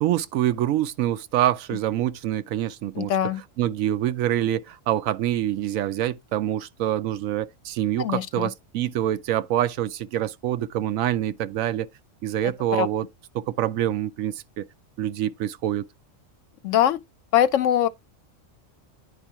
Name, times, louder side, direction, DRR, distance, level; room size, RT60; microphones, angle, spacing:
voice 1, 0.0-3.1 3.6-11.9 12.2-13.1 13.3-14.6 15.0-15.8, right 12 dB, 85° right, 1.0 m, -25 dB
voice 2, 2.9-3.4 8.0-8.5 12.7-12.9 16.6-17.0 17.3-17.9, left 11 dB, 75° left, 0.9 m, -22 dB
10.0 x 4.5 x 2.9 m
omnidirectional pair, 1.4 m